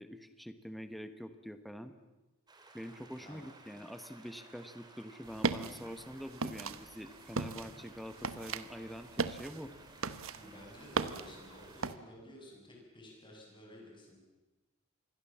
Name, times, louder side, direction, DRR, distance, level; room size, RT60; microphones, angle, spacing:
voice 1, 0.0-1.9 2.7-9.7, equal, ahead, 9 dB, 1.1 m, -45 dB
sound 1, 2.5-11.9, right 2 dB, 20° right, 3.2 m, -57 dB
sound 2, 5.3-12.0, right 4 dB, 70° right, 1.1 m, -38 dB
voice 2, 10.4-14.2, left 1 dB, 20° left, 0 dB, 7.1 m, -53 dB
27.5 x 21.0 x 7.4 m, 1.1 s
head